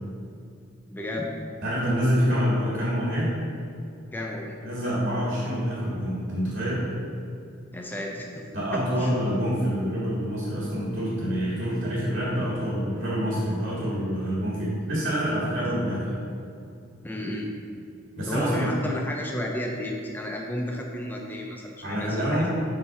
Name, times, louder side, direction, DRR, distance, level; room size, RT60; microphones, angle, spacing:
voice 1, 0.9-1.3 4.1-4.6 7.7-8.3 8.7-9.1 17.0-17.5 18.3-22.5, left 1 dB, 10° left, 0 dB, 0.5 m, -32 dB
voice 2, 1.6-3.3 4.6-6.9 8.5-16.1 18.2-18.7 21.8-22.5, equal, 45° right, -6 dB, 1.7 m, -26 dB
5.9 x 4.7 x 5.6 m, 2.5 s
head